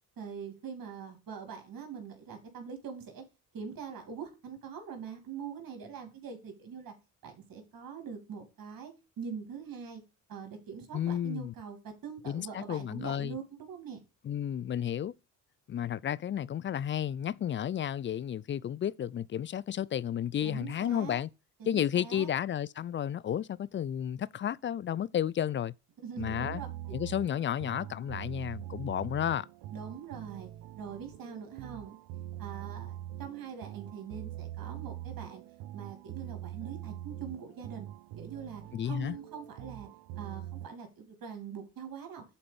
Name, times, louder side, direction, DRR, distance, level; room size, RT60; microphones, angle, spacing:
voice 1, 0.2-3.2 3.5-6.9 7.2-10.0 10.3-14.0 20.4-21.2 21.7-22.3 26.0-27.0 29.7-32.0 32.4-35.4 35.7-37.9 38.2-39.9 40.2-42.2, right 6 dB, 60° right, 2.7 m, -43 dB
voice 2, 10.9-11.5 12.3-13.4 14.2-15.1 15.7-21.3 21.7-25.7 26.2-26.6 26.9-29.5 38.7-39.2, left 10 dB, 30° left, 0.4 m, -32 dB
sound 1, 26.2-40.7, right 13 dB, 85° right, 0.6 m, -43 dB
7.1 x 4.2 x 5.3 m
supercardioid pair, 65°, 39 cm